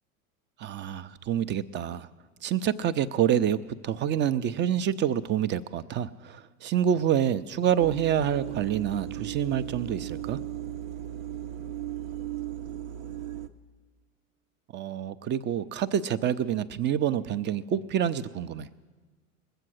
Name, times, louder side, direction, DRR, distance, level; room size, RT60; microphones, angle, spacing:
voice 1, 0.6-2.1 2.4-10.4 14.7-18.7, right 9 dB, 25° right, 14 dB, 0.5 m, -27 dB
sound 1, 7.8-13.5, right 12 dB, 70° right, 0.9 m, -36 dB
20.5 x 7.8 x 6.3 m, 1.4 s
hypercardioid pair, 85°, 42 cm